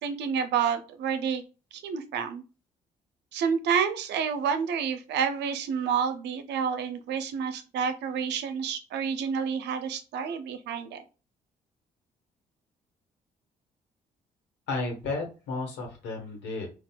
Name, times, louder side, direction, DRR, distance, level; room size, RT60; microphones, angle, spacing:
voice 1, 0.0-1.4 1.7-2.4 3.3-11.0, right 7 dB, 70° right, 8 dB, 0.6 m, -29 dB
voice 2, 14.7-16.7, left 3 dB, 70° left, 2 dB, 1.1 m, -33 dB
4.1 x 2.3 x 2.2 m, 0.33 s
hypercardioid pair, 45°, 19 cm